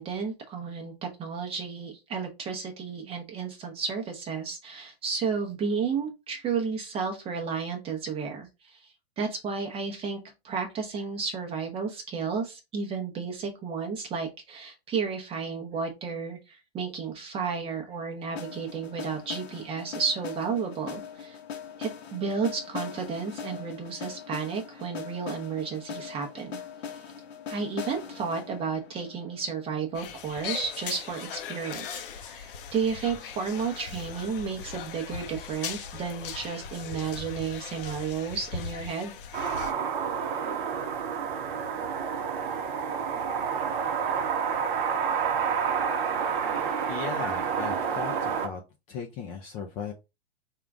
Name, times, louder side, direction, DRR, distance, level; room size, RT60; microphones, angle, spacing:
voice 1, 0.0-8.8 9.2-10.2 10.4-21.4 21.8-26.6 27.5-39.1, right 5 dB, 20° right, 3 dB, 0.7 m, -32 dB
sound 1, 18.4-30.3, left 7 dB, 80° left, 0.9 m, -41 dB
sound 2, 29.9-39.7, left 7 dB, 60° left, 0.7 m, -39 dB
sound 3, 39.3-48.5, right 7 dB, 50° right, 0.8 m, -29 dB
voice 2, 46.9-48.6 48.9-49.9, left 6 dB, 25° left, 2 dB, 0.4 m, -37 dB
3.7 x 2.4 x 3.4 m, 0.26 s
hypercardioid pair, 130°, 32 cm